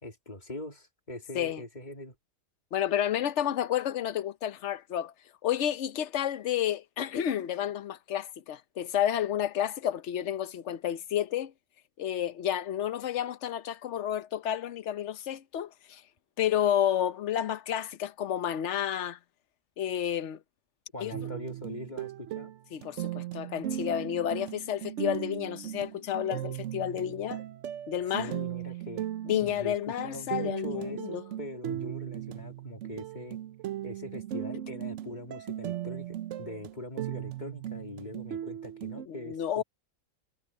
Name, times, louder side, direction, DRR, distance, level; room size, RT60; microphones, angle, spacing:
voice 1, 0.0-2.1 20.9-22.5 28.2-29.1 29.4-33.4 33.8-39.6, left 1 dB, 30° left, 2.5 m, -42 dB
voice 2, 2.7-5.1 5.4-11.5 12.0-16.0 16.4-19.2 19.8-20.4 21.0-21.1 22.7-27.4 27.9-28.3 29.3-31.2 39.1-39.6, left 10 dB, 60° left, 1.0 m, -30 dB
sound 1, 21.1-39.1, right 12 dB, 65° right, 0.9 m, -38 dB
omnidirectional pair, 1.5 m